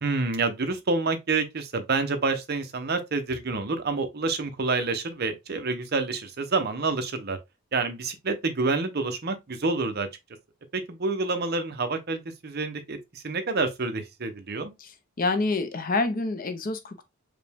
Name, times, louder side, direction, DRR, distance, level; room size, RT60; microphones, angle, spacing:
voice 1, 0.0-7.4 7.7-10.1 10.7-14.7, right 3 dB, 45° right, 0.7 m, -28 dB
voice 2, 15.2-17.0, left 3 dB, 40° left, 0.5 m, -27 dB
4.9 x 2.2 x 3.4 m
head